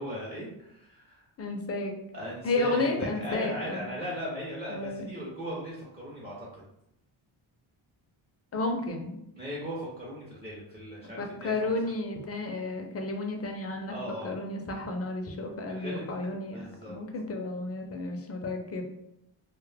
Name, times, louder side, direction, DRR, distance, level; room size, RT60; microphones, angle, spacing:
voice 1, 0.0-1.2 2.1-6.6 9.3-11.7 13.9-14.4 15.7-16.2 16.5-17.0, equal, 20° right, -6 dB, 0.6 m, -38 dB
voice 2, 1.4-1.9 2.4-3.9 4.7-5.1 8.5-9.2 11.2-13.9 14.2-18.8, left 2 dB, 30° left, 3 dB, 0.4 m, -32 dB
2.2 x 2.0 x 3.3 m, 0.82 s
cardioid pair, 100°, 49 cm